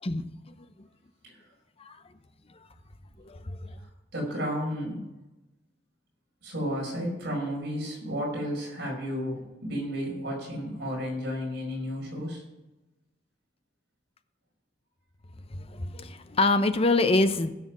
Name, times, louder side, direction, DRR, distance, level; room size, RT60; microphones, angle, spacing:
voice 1, 3.2-3.7 15.5-17.5, left 2 dB, 30° left, 10 dB, 0.7 m, -25 dB
voice 2, 4.1-5.0 6.4-12.4, equal, 65° right, -1 dB, 5.3 m, -32 dB
16.0 x 7.0 x 6.0 m, 1.0 s
head